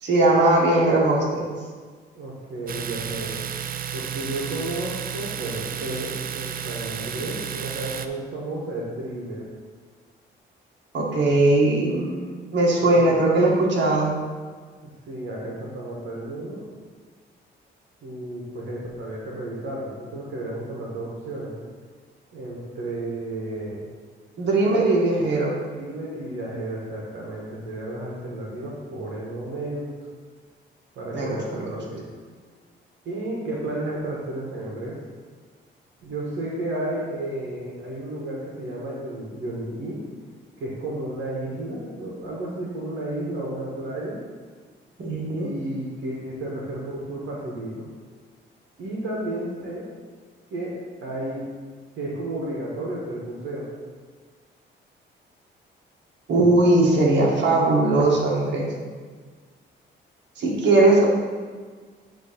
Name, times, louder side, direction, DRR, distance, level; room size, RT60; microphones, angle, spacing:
voice 1, 0.0-1.5 10.9-14.2 24.4-25.6 31.1-31.6 45.0-45.5 56.3-58.7 60.4-61.1, right 2 dB, 65° right, -3 dB, 1.8 m, -19 dB
voice 2, 2.1-3.4 3.9-9.5 12.8-13.3 15.1-16.6 18.0-21.5 22.3-23.8 25.7-29.9 30.9-32.0 33.0-34.9 36.0-40.0 40.6-44.2 45.4-47.9 48.8-49.8 50.5-50.7 51.0-51.4 52.0-53.7, right 1 dB, 80° right, -5 dB, 1.5 m, -32 dB
Domestic sounds home sounds, 2.7-8.1, right 8 dB, 45° right, 0.5 m, -32 dB
9.3 x 3.1 x 5.9 m, 1.5 s
cardioid pair, 90°, 20 cm